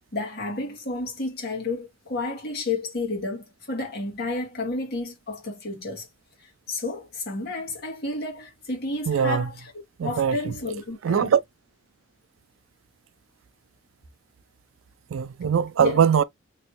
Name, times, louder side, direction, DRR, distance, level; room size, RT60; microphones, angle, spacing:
voice 1, 0.1-6.1 6.4-9.7 10.0-11.3 15.8-16.1, left 3 dB, 50° left, 1.5 m, -31 dB
voice 2, 9.1-9.5 10.0-10.4 11.0-11.4 15.1-16.2, right 7 dB, 85° right, 0.4 m, -21 dB
3.1 x 2.7 x 2.9 m
head